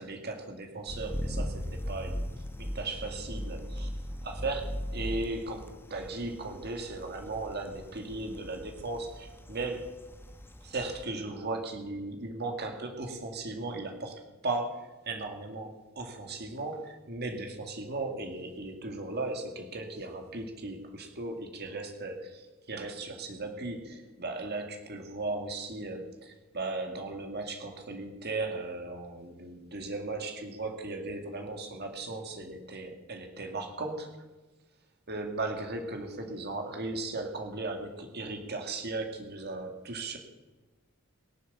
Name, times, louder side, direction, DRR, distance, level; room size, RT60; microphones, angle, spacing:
voice 1, 0.0-2.3 2.6-3.9 4.2-9.9 10.6-34.1 35.1-40.2, right 2 dB, 50° right, 4 dB, 2.2 m, -37 dB
sound 1, 0.9-11.1, equal, 10° left, 0.9 m, -39 dB
22.0 x 7.4 x 7.2 m, 1.2 s
head